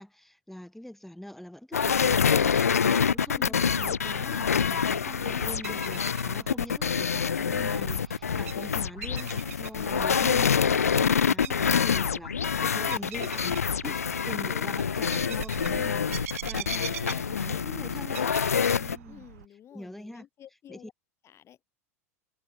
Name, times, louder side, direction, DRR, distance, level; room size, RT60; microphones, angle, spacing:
voice 1, 0.0-18.4 18.7-19.2 19.7-20.3 20.7-20.8, left 1 dB, 5° left, 1.8 m, -43 dB
sound 1, 1.7-19.0, left 7 dB, 85° left, 0.8 m, -26 dB
sound 2, 2.6-19.5, right 13 dB, 70° right, 1.1 m, -44 dB
voice 2, 3.2-3.6 5.2-5.5 19.1-20.9 21.2-21.6, left 10 dB, 35° left, 3.5 m, -50 dB
figure-of-eight pair, 85°, 8 cm